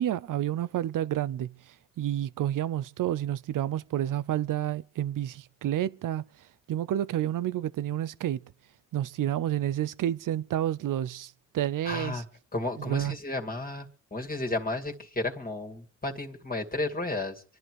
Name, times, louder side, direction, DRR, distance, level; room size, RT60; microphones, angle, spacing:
voice 1, 0.0-1.5 2.0-6.2 6.7-8.4 8.9-12.2 12.8-13.1, right 12 dB, 70° right, 0.6 m, -29 dB
voice 2, 11.8-12.2 12.5-17.4, left 2 dB, 25° left, 2.3 m, -33 dB
25.5 x 10.5 x 4.8 m
cardioid pair, 60°, 33 cm